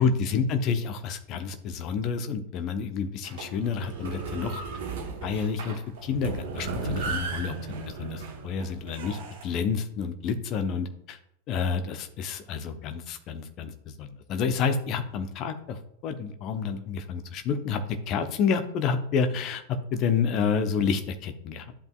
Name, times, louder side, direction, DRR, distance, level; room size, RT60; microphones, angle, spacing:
voice 1, 0.0-4.6 5.2-11.2 11.5-19.6 19.9-21.7, left 6 dB, 35° left, 8 dB, 0.8 m, -29 dB
sound 1, 3.2-9.5, right 4 dB, 55° right, 1.2 m, -35 dB
11.5 x 5.3 x 2.4 m, 0.73 s
figure-of-eight pair, 90°, 0 cm